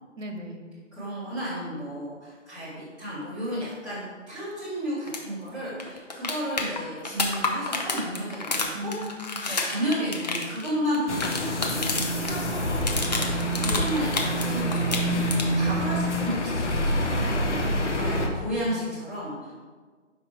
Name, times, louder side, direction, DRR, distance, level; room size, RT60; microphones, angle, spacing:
voice 1, 0.2-0.7 8.7-9.5 17.9-19.0, equal, 90° right, 3 dB, 1.1 m, -38 dB
voice 2, 0.9-8.9 9.5-12.9 13.5-15.2 15.5-17.3 18.0-19.5, equal, ahead, -13 dB, 0.9 m, -32 dB
sound 1, 5.1-5.2 5.5-5.6 5.8-12.3 12.6-14.5 14.7-15.7 17.7-17.8, left 3 dB, 35° left, 0.6 m, -29 dB
sound 2, 11.1-18.3, equal, 65° left, 1.0 m, -26 dB
5.1 x 4.8 x 4.6 m, 1.5 s
figure-of-eight pair, 155°, 37 cm